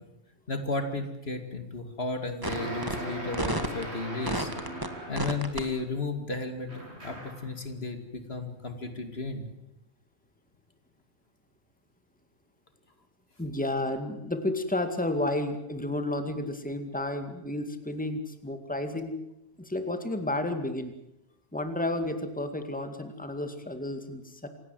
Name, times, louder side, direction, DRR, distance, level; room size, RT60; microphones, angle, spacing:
voice 1, 0.5-4.5 5.1-9.5, left 3 dB, 65° left, 7 dB, 2.8 m, -34 dB
sound 1, 2.4-2.6 2.8-2.9 3.3-3.8 4.3-4.9 5.2-5.6, right 1 dB, 20° right, 2.0 m, -30 dB
sound 2, 2.4-5.5 6.7-7.5, right 1 dB, 80° right, 8.2 m, -38 dB
voice 2, 13.4-19.1 19.6-20.9 21.5-24.5, left 1 dB, 5° left, 7 dB, 2.2 m, -31 dB
27.0 x 18.0 x 7.7 m, 0.89 s
omnidirectional pair, 1.1 m